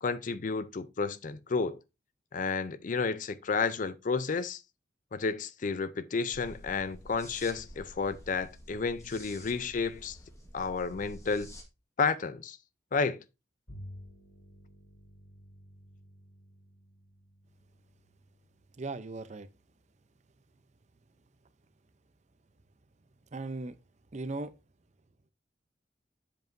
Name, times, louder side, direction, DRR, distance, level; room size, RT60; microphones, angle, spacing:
voice 1, 0.0-1.8 2.3-4.6 5.1-10.2 10.5-11.5 12.0-12.6 12.9-13.2, left 4 dB, 50° left, 0.5 m, -31 dB
sound 1, 6.3-11.6, equal, 20° left, 1.5 m, -49 dB
Bowed string instrument, 13.7-19.3, equal, 70° left, 4.7 m, -52 dB
voice 2, 18.8-19.5 23.3-23.7 24.1-24.5, right 3 dB, 40° right, 0.6 m, -37 dB
7.9 x 7.2 x 2.6 m
head